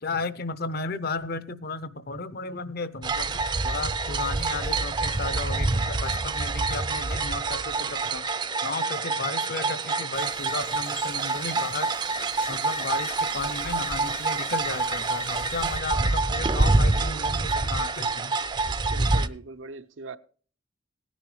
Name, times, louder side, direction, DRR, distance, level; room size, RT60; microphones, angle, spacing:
voice 1, 0.0-8.3 8.6-11.9 12.5-18.3, left 3 dB, 50° left, 0.7 m, -34 dB
sound 1, 3.0-19.3, right 3 dB, 25° right, 0.4 m, -27 dB
sound 2, 10.1-15.8, left 7 dB, 70° left, 1.0 m, -45 dB
voice 2, 18.9-20.2, right 3 dB, 80° right, 0.7 m, -40 dB
17.0 x 10.0 x 3.2 m
head